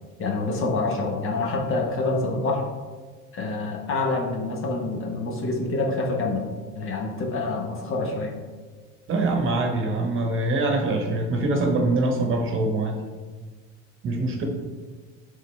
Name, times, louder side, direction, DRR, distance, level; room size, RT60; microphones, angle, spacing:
voice 1, 0.2-2.7 3.3-6.5 6.8-8.3, left 3 dB, 40° left, 2 dB, 1.2 m, -26 dB
voice 2, 9.1-13.0 14.0-14.4, right 2 dB, 40° right, 3 dB, 1.1 m, -24 dB
10.5 x 3.7 x 3.3 m, 1.4 s
cardioid pair, 140°, 32 cm